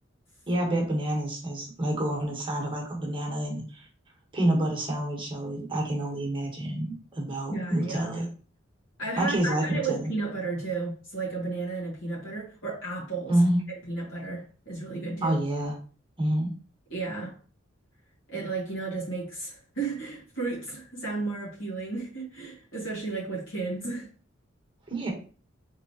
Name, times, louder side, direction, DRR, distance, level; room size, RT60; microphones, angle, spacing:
voice 1, 0.5-3.9 4.3-8.3 9.2-10.1 13.3-13.6 15.2-15.8 16.2-16.5 24.9-25.1, right 1 dB, 25° right, 1.1 m, -28 dB
voice 2, 7.5-8.1 9.0-13.4 13.9-15.4 16.9-17.3 18.3-24.1, right 3 dB, 85° left, 1.9 m, -33 dB
3.7 x 3.1 x 2.8 m
head